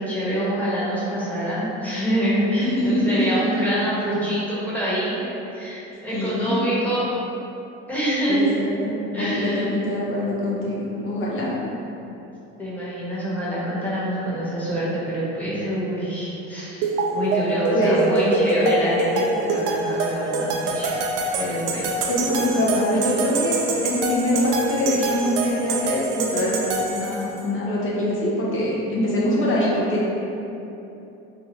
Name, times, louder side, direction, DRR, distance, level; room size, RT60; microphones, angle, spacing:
voice 1, 0.0-5.3 5.5-7.1 7.9-8.5 9.1-9.7 12.6-22.0, equal, 5° left, -10 dB, 1.4 m, -26 dB
voice 2, 2.6-3.4 6.1-6.6 8.3-11.6 17.7-18.0 22.1-23.5 23.8-26.6 26.9-30.1, left 1 dB, 40° left, -6 dB, 1.1 m, -24 dB
sound 1, 16.8-27.4, right 3 dB, 70° right, 0.5 m, -25 dB
3.7 x 2.4 x 2.9 m, 2.9 s
supercardioid pair, 85°, 31 cm